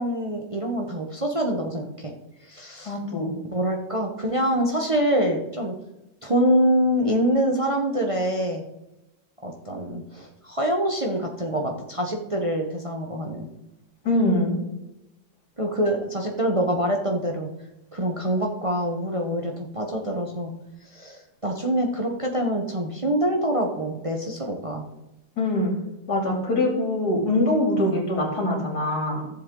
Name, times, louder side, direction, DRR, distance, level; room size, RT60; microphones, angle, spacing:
voice 1, 0.0-2.1 2.4-3.0 3.5-5.7 6.2-8.6 9.4-13.5 15.6-17.5 17.9-20.5 20.8-24.8 27.8-28.0, equal, 25° right, 2 dB, 0.9 m, -25 dB
voice 2, 2.9-3.3 14.0-14.6 25.4-25.7 26.1-29.3, left 1 dB, 85° left, 0 dB, 3.1 m, -23 dB
14.0 x 7.3 x 3.8 m, 0.95 s
omnidirectional pair, 1.7 m